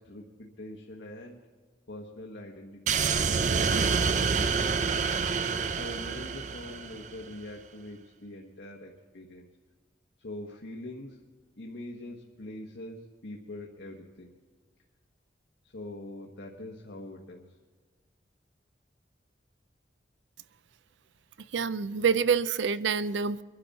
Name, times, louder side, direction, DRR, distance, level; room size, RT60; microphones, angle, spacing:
voice 1, 0.0-1.4 1.9-5.0 5.8-9.5 10.2-11.2 11.6-14.3 15.6-17.5, left 1 dB, 80° left, 1.3 m, -43 dB
sound 1, 2.9-7.2, right 5 dB, 40° right, 0.5 m, -27 dB
voice 2, 21.5-23.4, right 6 dB, 90° right, 0.5 m, -27 dB
23.5 x 11.0 x 4.2 m
head